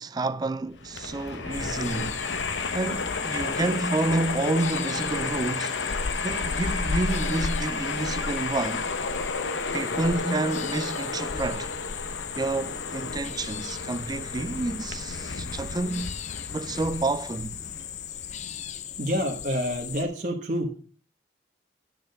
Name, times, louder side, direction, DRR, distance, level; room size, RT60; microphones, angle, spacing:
voice 1, 0.0-2.3 2.7-5.8 6.2-8.9 9.7-11.7 12.3-16.2 16.5-17.6, right 2 dB, 20° right, 0.3 m, -29 dB
Train, 0.7-18.3, left 4 dB, 90° left, 0.9 m, -33 dB
sound 1, 1.5-20.0, left 6 dB, 40° left, 0.4 m, -36 dB
voice 2, 19.0-20.7, equal, 45° right, 1.2 m, -29 dB
9.9 x 4.4 x 6.6 m
head